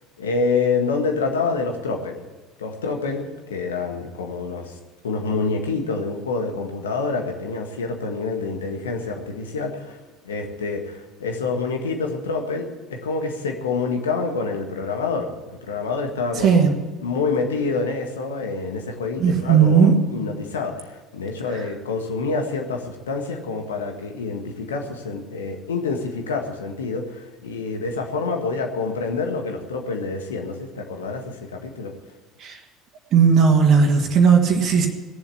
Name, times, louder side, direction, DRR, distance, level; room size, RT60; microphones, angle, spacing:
voice 1, 0.2-2.2 2.6-4.8 5.0-10.0 10.2-15.3 15.6-16.7 17.0-31.9, left 4 dB, 75° left, 3 dB, 1.7 m, -27 dB
voice 2, 19.2-19.9 32.4-32.5 33.1-34.9, right 6 dB, 45° right, 3 dB, 1.8 m, -16 dB
18.0 x 7.3 x 8.5 m, 1.2 s
figure-of-eight pair, 65°, 0 cm